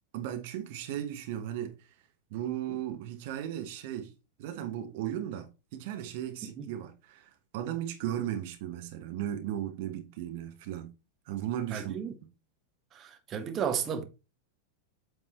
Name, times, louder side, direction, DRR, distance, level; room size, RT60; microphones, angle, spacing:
voice 1, 0.1-1.9 2.3-4.1 4.4-10.9 11.3-12.0, right 11 dB, 50° right, 1.0 m, -36 dB
voice 2, 11.7-12.1 12.9-14.0, right 7 dB, 30° right, 1.1 m, -33 dB
8.1 x 3.7 x 4.3 m
figure-of-eight pair, 90°, 0 cm